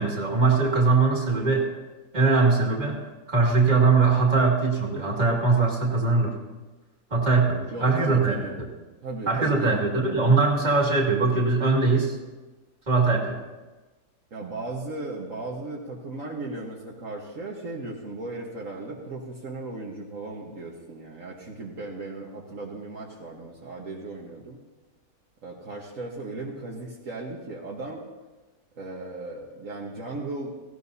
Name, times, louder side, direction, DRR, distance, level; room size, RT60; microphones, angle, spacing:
voice 1, 0.0-1.7 2.1-3.0 3.3-6.3 7.1-8.7 9.3-12.1 12.9-13.4, right 4 dB, 30° right, -1 dB, 2.2 m, -21 dB
voice 2, 7.7-8.6 9.0-9.8 14.3-24.6 25.4-28.1 28.8-30.5, right 2 dB, 60° right, -3 dB, 1.7 m, -36 dB
18.0 x 16.0 x 2.8 m, 1.2 s
omnidirectional pair, 1.6 m